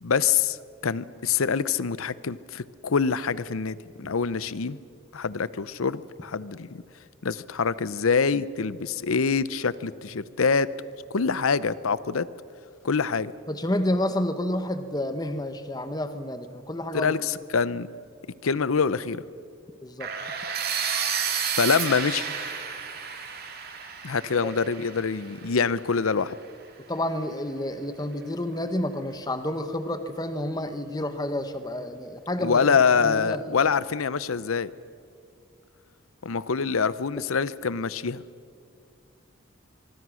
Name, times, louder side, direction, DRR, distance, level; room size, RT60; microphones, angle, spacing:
voice 1, 0.0-0.6 0.8-4.8 5.1-6.8 7.2-10.7 11.1-12.3 12.8-13.3 16.9-17.9 18.4-19.2 21.6-22.3 24.0-26.3 32.4-34.7 36.2-38.2, left 5 dB, 90° left, 17 dB, 0.7 m, -25 dB
voice 2, 13.5-17.2 19.8-20.1 24.4-24.5 26.9-33.7, left 1 dB, 20° left, 9 dB, 1.1 m, -30 dB
sound 1, 20.0-25.9, right 7 dB, 45° right, 2.5 m, -31 dB
24.5 x 23.5 x 6.3 m, 2.4 s
head